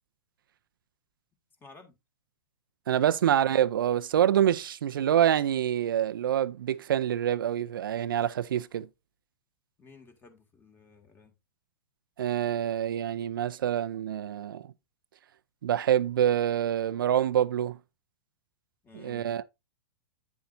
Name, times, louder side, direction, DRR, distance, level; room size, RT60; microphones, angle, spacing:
voice 1, 1.6-2.0 9.8-11.3 18.8-19.3, left 4 dB, 15° left, 2.2 m, -53 dB
voice 2, 2.9-8.9 12.2-14.6 15.6-17.8 19.0-19.4, right 10 dB, 75° right, 0.5 m, -26 dB
9.1 x 7.0 x 2.6 m
hypercardioid pair, 120°, 11 cm